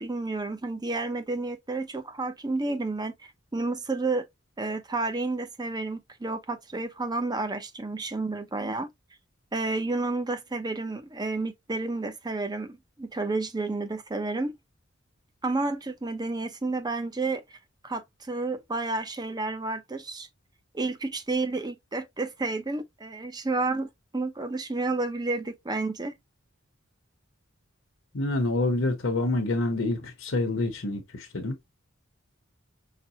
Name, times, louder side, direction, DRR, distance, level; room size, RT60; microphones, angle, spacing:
voice 1, 0.0-4.2 4.6-8.9 9.5-14.6 15.4-17.4 17.8-20.3 20.7-23.9 24.1-26.1, right 3 dB, 20° right, 0.6 m, -30 dB
voice 2, 28.1-31.6, left 2 dB, 70° left, 1.0 m, -27 dB
5.8 x 2.2 x 2.8 m
head